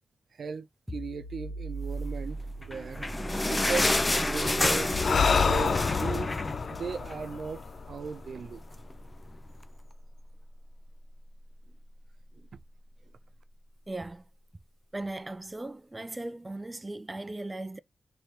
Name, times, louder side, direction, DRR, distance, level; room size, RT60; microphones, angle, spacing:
voice 1, 0.3-3.0 3.5-4.9 5.4-6.3 6.7-8.6 12.4-12.5, right 5 dB, 80° right, 0.6 m, -37 dB
sound 1, 0.9-12.3, right 1 dB, 5° left, 0.9 m, -41 dB
sound 2, 2.6-7.3 7.7-7.8 8.1-8.2 8.9-9.0, left 2 dB, 25° left, 0.5 m, -29 dB
Breathing, 4.9-8.5, left 5 dB, 75° left, 0.5 m, -28 dB
voice 2, 13.9-14.2 14.9-17.8, right 2 dB, 20° right, 0.4 m, -38 dB
3.4 x 3.4 x 4.2 m
wide cardioid pair, 90°, 0 cm